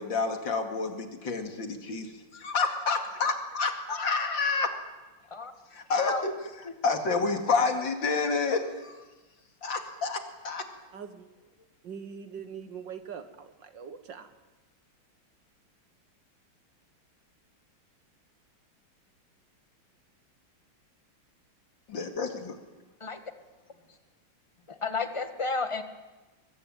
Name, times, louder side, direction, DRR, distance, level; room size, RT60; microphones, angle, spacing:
voice 1, 0.0-4.7 5.7-6.3 6.8-9.0 9.6-10.6 21.9-22.6, left 4 dB, 60° left, 6 dB, 2.9 m, -29 dB
voice 2, 10.9-11.3 11.8-14.3, right 7 dB, 60° right, 10 dB, 2.0 m, -42 dB
voice 3, 24.7-25.8, left 3 dB, 15° left, 9 dB, 1.4 m, -31 dB
23.0 x 20.5 x 9.0 m, 1.2 s
omnidirectional pair, 2.3 m